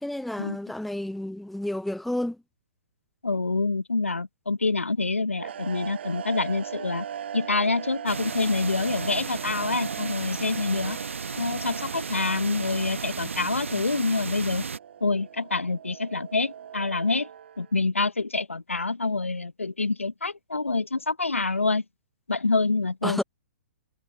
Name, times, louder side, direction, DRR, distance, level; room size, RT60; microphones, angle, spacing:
voice 1, 0.0-2.4 23.0-23.2, left 1 dB, ahead, 0.7 m, -31 dB
voice 2, 3.2-7.0 7.3-11.0 11.4-14.6 15.0-17.3 17.6-21.8 22.3-23.2, left 3 dB, 85° left, 0.9 m, -26 dB
sound 1, 5.4-17.8, right 9 dB, 60° right, 5.0 m, -40 dB
sound 2, 8.1-14.8, right 5 dB, 75° right, 1.1 m, -34 dB
figure-of-eight pair, 115°, 7 cm